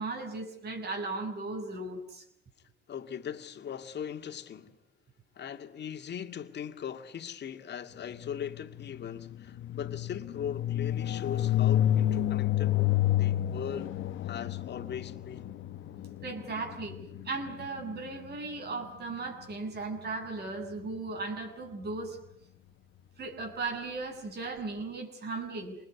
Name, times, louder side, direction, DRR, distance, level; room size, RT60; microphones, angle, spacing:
voice 1, 0.0-2.2 16.2-17.0 17.2-22.2 23.2-25.8, right 3 dB, 55° right, 6.6 m, -37 dB
voice 2, 2.9-4.7 5.3-12.8 13.1-13.9 14.2-15.5, left 8 dB, 60° left, 2.3 m, -39 dB
Light Aircraft taking off, 8.1-18.1, left 13 dB, 80° left, 1.2 m, -30 dB
27.5 x 21.0 x 9.7 m
cardioid pair, 90°, 20 cm